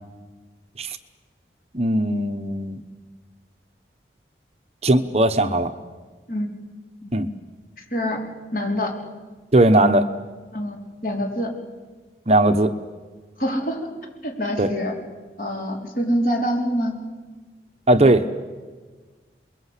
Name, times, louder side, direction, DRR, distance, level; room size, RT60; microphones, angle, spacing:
voice 1, 1.7-2.8 4.8-5.7 7.1-7.3 9.5-10.1 12.3-12.7 14.6-14.7 17.9-18.2, right 1 dB, 35° right, 9 dB, 1.0 m, -18 dB
voice 2, 7.8-8.2 8.5-8.9 10.5-10.8 11.0-11.5 13.4-13.9 14.2-15.0 15.4-16.9, equal, 50° left, 1 dB, 4.4 m, -25 dB
29.0 x 22.0 x 8.3 m, 1.4 s
head